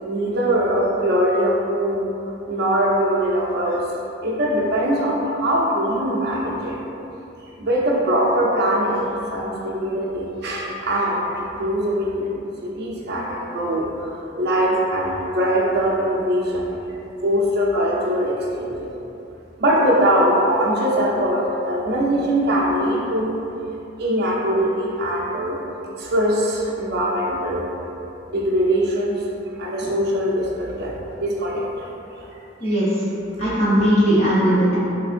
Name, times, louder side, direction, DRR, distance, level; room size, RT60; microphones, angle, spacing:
voice 1, 0.1-3.9 4.2-6.8 7.6-16.7 17.2-18.9 19.6-23.7 24.0-25.6 26.0-27.7 28.3-29.3 29.6-31.9 32.2-32.3 32.6-32.7, equal, 55° right, -4 dB, 0.6 m, -22 dB
voice 2, 32.6-33.0 33.4-34.8, equal, 35° left, -10 dB, 0.8 m, -18 dB
3.5 x 3.4 x 2.5 m, 2.9 s
head